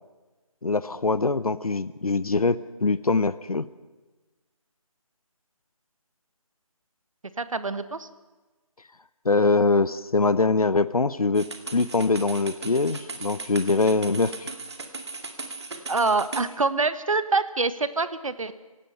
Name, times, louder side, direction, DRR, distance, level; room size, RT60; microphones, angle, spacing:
voice 1, 0.6-3.6 9.2-14.5, left 3 dB, 85° left, 16 dB, 0.9 m, -23 dB
voice 2, 7.4-8.1 15.9-18.5, right 3 dB, 65° right, 13 dB, 1.3 m, -25 dB
sound 1, 11.3-16.5, right 3 dB, 50° right, 2.2 m, -38 dB
26.5 x 17.5 x 5.7 m, 1.2 s
figure-of-eight pair, 165°, 18 cm